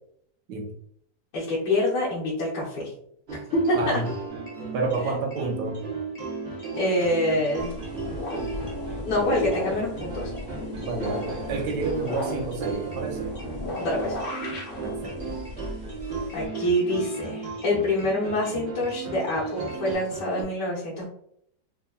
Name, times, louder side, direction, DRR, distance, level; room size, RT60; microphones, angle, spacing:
voice 1, 1.3-2.9 3.5-4.0 6.8-7.7 9.1-10.3 13.7-14.2 16.3-21.0, left 1 dB, 75° left, -6 dB, 1.5 m, -26 dB
sound 1, 3.3-20.4, right 3 dB, 45° right, 0.8 m, -37 dB
voice 2, 3.8-4.1 4.7-5.8 10.8-13.3 14.8-15.4, right 3 dB, 75° right, 2 dB, 1.3 m, -30 dB
sound 2, 4.3-19.9, right 4 dB, 20° left, 0.9 m, -40 dB
sound 3, 7.6-16.4, left 1 dB, 50° left, 0.6 m, -35 dB
4.4 x 2.7 x 2.2 m, 0.69 s
omnidirectional pair, 1.9 m